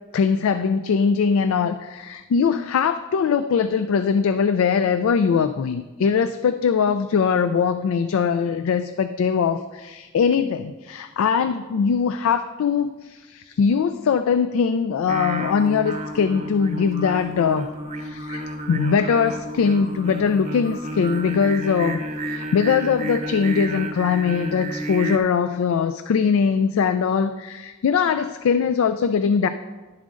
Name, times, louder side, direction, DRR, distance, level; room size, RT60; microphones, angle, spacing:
voice 1, 0.1-17.7 18.0-22.0 22.3-29.5, left 6 dB, 80° left, 10 dB, 0.3 m, -21 dB
Singing, 15.1-25.2, right 1 dB, 30° right, 0.7 m, -31 dB
11.5 x 7.3 x 2.5 m, 1.2 s
head